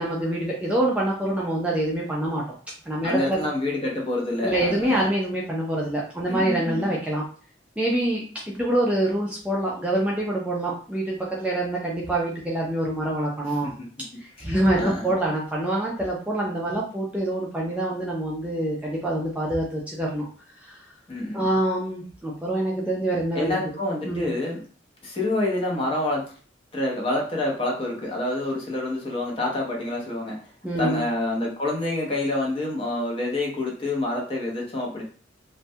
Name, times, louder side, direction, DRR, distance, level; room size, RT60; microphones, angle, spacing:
voice 1, 0.0-2.6 2.9-3.5 4.4-7.2 7.8-13.7 14.2-20.3 20.7-20.8 21.3-23.6 24.0-24.3 30.6-31.0, right 1 dB, 5° right, -4 dB, 0.3 m, -25 dB
voice 2, 3.0-5.1 6.3-6.9 13.4-13.9 14.4-14.5 14.8-15.1 21.1-21.5 23.3-24.6 25.0-26.3 26.7-30.4 30.8-35.0, left 2 dB, 30° left, -2 dB, 0.6 m, -27 dB
2.1 x 2.1 x 2.6 m, 0.41 s
head